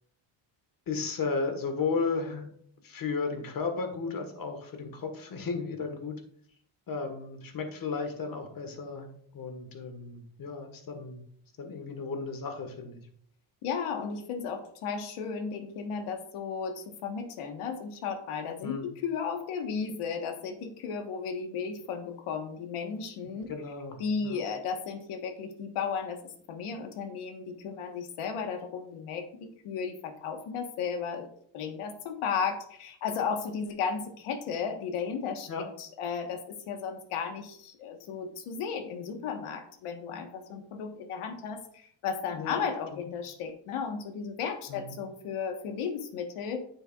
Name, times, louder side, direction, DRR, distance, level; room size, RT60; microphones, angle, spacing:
voice 1, 0.9-2.5 2.8-6.2 6.9-11.2 11.6-13.0 18.6-18.9 23.3-24.4 35.5-35.7 42.3-42.6 44.7-45.0, left 4 dB, 40° left, 6 dB, 1.5 m, -34 dB
voice 2, 13.6-23.5 24.0-26.2 26.5-31.3 31.5-35.5 35.8-46.6, left 6 dB, 85° left, 5 dB, 1.4 m, -34 dB
9.4 x 6.9 x 2.4 m, 0.63 s
cardioid pair, 140°, 50 cm